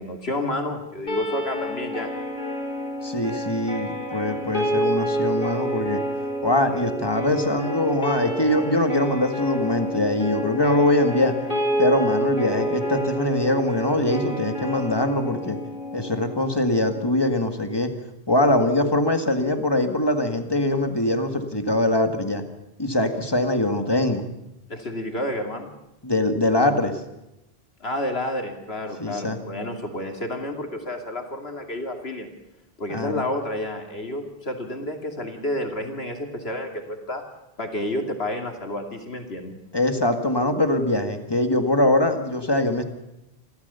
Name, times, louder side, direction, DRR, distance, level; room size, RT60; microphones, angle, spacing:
voice 1, 0.0-2.1 24.7-25.7 27.8-32.3 32.8-37.2 37.6-39.5, left 1 dB, 80° left, 4 dB, 2.8 m, -30 dB
sound 1, 1.1-17.1, right 1 dB, 55° left, 5.0 m, -29 dB
voice 2, 3.0-6.0 6.4-11.3 11.8-15.6 15.9-17.9 18.3-22.4 22.8-24.2 26.0-27.0 29.0-29.4 32.9-33.2 39.7-42.8, left 1 dB, 25° left, 6 dB, 2.0 m, -22 dB
28.0 x 13.5 x 6.9 m, 0.91 s
omnidirectional pair, 1.0 m